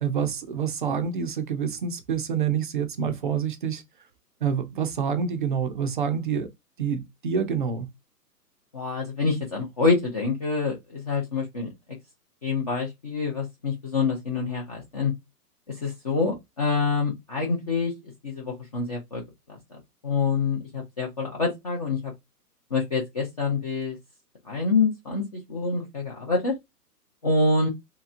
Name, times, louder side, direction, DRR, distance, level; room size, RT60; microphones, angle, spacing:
voice 1, 0.0-3.8 4.4-6.5 6.8-7.9, right 7 dB, 35° right, 0.4 m, -27 dB
voice 2, 8.7-11.7 12.4-15.1 15.7-19.2 19.5-22.1 22.7-24.0 24.4-26.5 27.2-27.7, left 4 dB, 25° left, 0.5 m, -26 dB
3.3 x 2.9 x 2.5 m
figure-of-eight pair, 120°, 49 cm